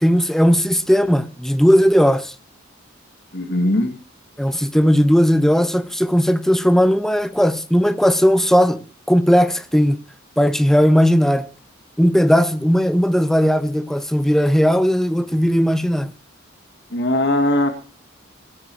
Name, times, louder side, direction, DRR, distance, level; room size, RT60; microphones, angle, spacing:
voice 1, 0.0-2.3 4.4-10.0 10.4-11.4 12.0-16.1, equal, ahead, 0.9 m, -17 dB
voice 2, 3.3-4.0 16.9-17.7, left 1 dB, 60° left, 2.2 m, -19 dB
19.5 x 17.5 x 3.0 m
head